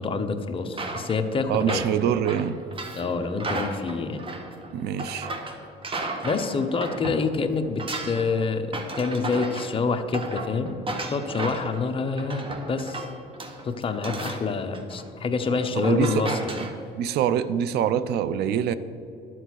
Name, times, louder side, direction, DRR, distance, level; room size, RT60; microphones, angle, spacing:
voice 1, 0.0-1.8 3.0-4.2 6.2-10.8 11.1-13.0 13.6-16.5, left 4 dB, 30° left, 6 dB, 1.0 m, -27 dB
sound 1, 0.7-7.3 7.6-16.7, right 2 dB, 30° right, 1.4 m, -34 dB
voice 2, 1.5-2.6 4.7-5.3 15.8-16.3 17.0-18.7, right 9 dB, 75° right, 15 dB, 0.6 m, -25 dB
12.0 x 7.7 x 6.3 m, 2.7 s
cardioid pair, 110°, 17 cm